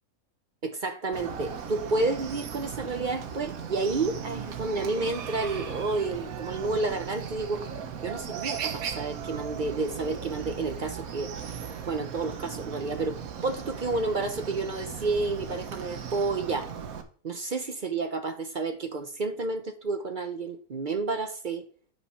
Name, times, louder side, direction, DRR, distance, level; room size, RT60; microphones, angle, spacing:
voice 1, 0.6-7.6 8.0-11.3 11.9-16.7 17.2-21.7, right 3 dB, 45° right, 0.7 m, -30 dB
Chicken rooster, 1.1-17.0, right 7 dB, 85° right, 1.4 m, -37 dB
8.5 x 4.2 x 5.6 m
omnidirectional pair, 1.5 m